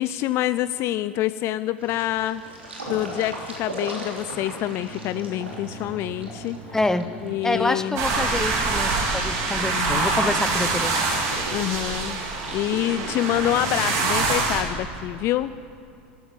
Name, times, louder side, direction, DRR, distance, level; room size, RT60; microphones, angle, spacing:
voice 1, 0.0-2.4 2.9-6.6 7.2-8.0 9.7-10.1 11.5-12.2 12.5-15.5, left 14 dB, 45° left, 14 dB, 0.4 m, -26 dB
sound 1, 1.8-13.9, right 1 dB, 90° right, 3.1 m, -39 dB
sound 2, 4.2-10.8, right 2 dB, 15° right, 4.5 m, -45 dB
voice 2, 6.7-7.1 7.4-11.1, left 2 dB, 10° left, 11 dB, 0.9 m, -26 dB
sound 3, 8.0-14.6, right 3 dB, 55° right, 2.9 m, -25 dB
14.0 x 13.0 x 7.5 m, 2.8 s
hypercardioid pair, 85°, 6 cm